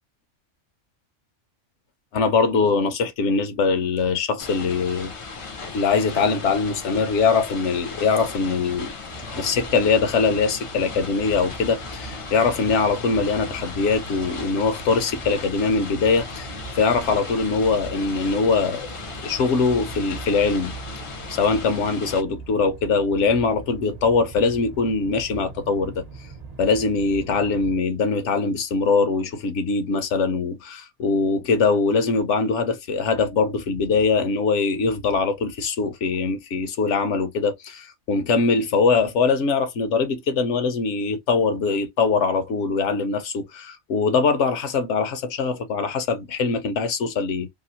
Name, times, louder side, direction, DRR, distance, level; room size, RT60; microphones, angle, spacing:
voice 1, 2.1-5.1 5.7-8.9 9.2-18.9 19.2-20.7 21.3-26.0 26.6-47.5, left 4 dB, 75° left, 1.0 m, -22 dB
sound 1, 4.4-22.2, left 4 dB, 50° left, 0.4 m, -37 dB
sound 2, 9.1-27.8, right 4 dB, 45° right, 0.6 m, -41 dB
2.9 x 2.4 x 2.7 m
omnidirectional pair, 1.3 m